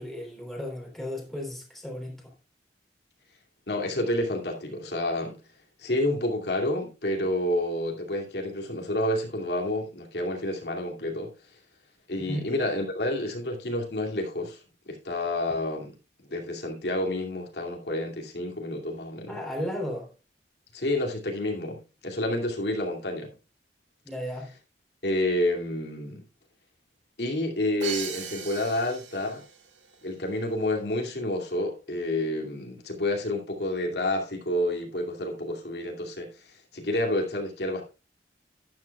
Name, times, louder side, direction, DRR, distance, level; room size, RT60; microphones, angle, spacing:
voice 1, 0.0-2.3 12.3-12.5 19.3-20.1 24.1-24.5, equal, ahead, 3.5 m, -34 dB
voice 2, 3.7-5.4 5.8-11.3 12.1-15.9 16.3-19.4 20.7-23.3 25.0-26.2 27.2-29.4 30.0-37.8, left 1 dB, 65° left, 2.5 m, -29 dB
Crash cymbal, 27.8-29.7, right 8 dB, 80° right, 2.2 m, -37 dB
12.5 x 11.0 x 2.3 m
head